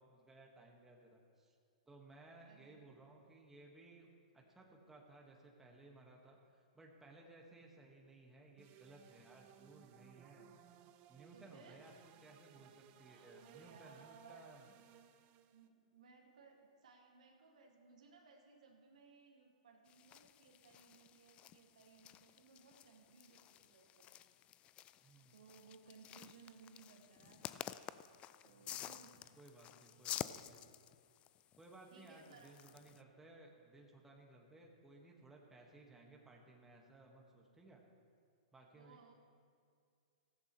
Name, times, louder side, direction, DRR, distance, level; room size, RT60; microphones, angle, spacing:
voice 1, 0.0-1.6 1.9-10.5 11.1-14.7 25.0-25.3 28.5-29.0 29.4-30.6 31.6-37.8 38.5-39.0, right 2 dB, 10° right, -1 dB, 1.7 m, -60 dB
voice 2, 2.4-3.0 11.3-11.8 13.0-14.5 15.5-24.2 25.3-27.6 28.4-29.4 31.9-32.6 38.7-39.1, right 5 dB, 70° right, 1 dB, 2.1 m, -62 dB
sound 1, 8.6-15.7, right 10 dB, 35° right, 0.7 m, -63 dB
sound 2, 19.9-33.0, left 12 dB, 30° left, 0.4 m, -51 dB
16.0 x 14.5 x 3.2 m, 2.3 s
hypercardioid pair, 115°, 4 cm